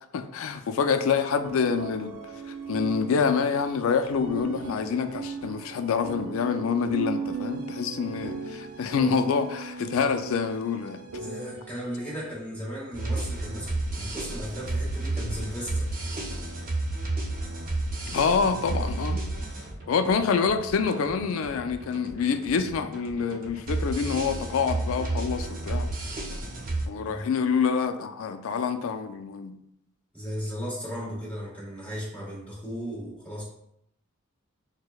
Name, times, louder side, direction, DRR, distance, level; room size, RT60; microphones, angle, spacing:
voice 1, 0.1-2.1 2.5-11.0 18.1-19.2 19.9-25.9 26.9-29.6, left 6 dB, 65° left, 9 dB, 0.4 m, -26 dB
sound 1, 1.4-12.3, right 5 dB, 85° right, 0.4 m, -37 dB
voice 2, 11.2-15.9 27.0-27.3 30.1-33.4, equal, 5° left, -8 dB, 1.3 m, -36 dB
sound 2, 12.9-26.9, right 2 dB, 40° right, 0.6 m, -32 dB
6.2 x 2.1 x 2.3 m, 0.75 s
head